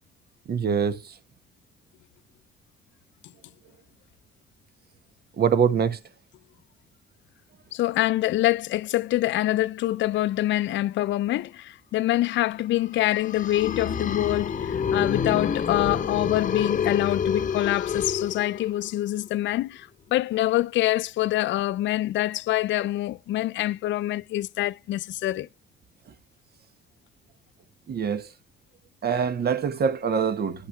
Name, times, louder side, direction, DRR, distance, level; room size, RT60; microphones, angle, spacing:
voice 1, 0.5-1.0 5.4-6.0 27.9-28.3 29.0-30.7, right 7 dB, 55° right, 1.2 m, -24 dB
voice 2, 7.7-25.5, left 15 dB, 70° left, 0.4 m, -25 dB
sound 1, 13.0-18.9, left 7 dB, 40° left, 0.8 m, -28 dB
10.0 x 5.6 x 3.2 m
cardioid pair, 90°, 20 cm